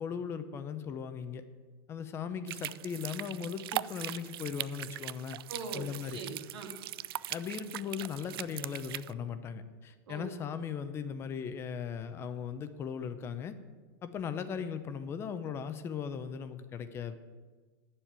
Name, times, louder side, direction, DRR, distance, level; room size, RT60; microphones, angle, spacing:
voice 1, 0.0-1.4 1.9-5.4 5.7-6.2 7.3-13.6 14.0-17.2, left 7 dB, 20° left, 11 dB, 0.6 m, -38 dB
sound 1, 2.5-9.1, right 15 dB, 65° right, 0.4 m, -40 dB
voice 2, 5.5-6.8 10.1-10.3, right 3 dB, 90° right, 3 dB, 2.6 m, -42 dB
9.8 x 7.3 x 8.9 m, 1.4 s
supercardioid pair, 165°, 13 cm